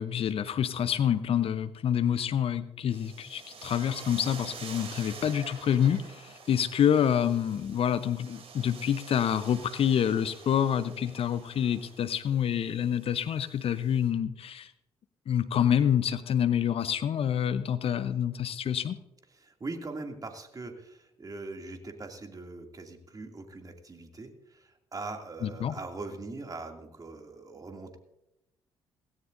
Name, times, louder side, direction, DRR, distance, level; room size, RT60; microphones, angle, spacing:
voice 1, 0.0-14.7 15.3-19.0 25.4-25.8, left 9 dB, 50° left, 13 dB, 0.8 m, -27 dB
sound 1, 2.9-14.1, right 5 dB, 55° right, 3.1 m, -48 dB
voice 2, 19.3-28.0, right 3 dB, 30° right, 4 dB, 2.6 m, -41 dB
17.5 x 16.5 x 2.7 m, 0.87 s
hypercardioid pair, 45°, 12 cm